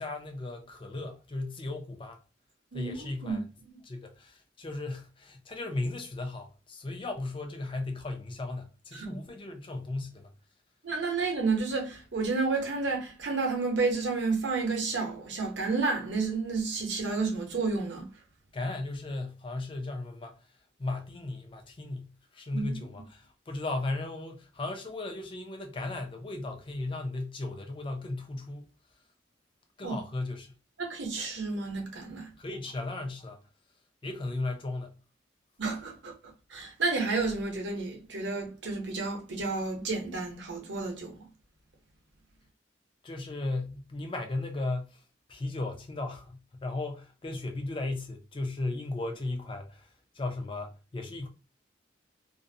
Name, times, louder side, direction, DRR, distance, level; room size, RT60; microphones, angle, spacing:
voice 1, 0.0-2.2 2.7-3.4 3.8-10.3 18.5-20.4 20.8-28.7 29.8-30.5 32.4-33.4 34.0-35.0 43.0-45.0 45.3-51.3, left 2 dB, 25° left, 0.4 m, -36 dB
voice 2, 2.7-3.8 8.9-9.2 10.8-18.1 22.5-22.7 29.8-30.0 30.8-32.3 35.6-36.1 36.5-41.2, right 4 dB, 70° right, 0.8 m, -31 dB
2.5 x 2.0 x 2.6 m
head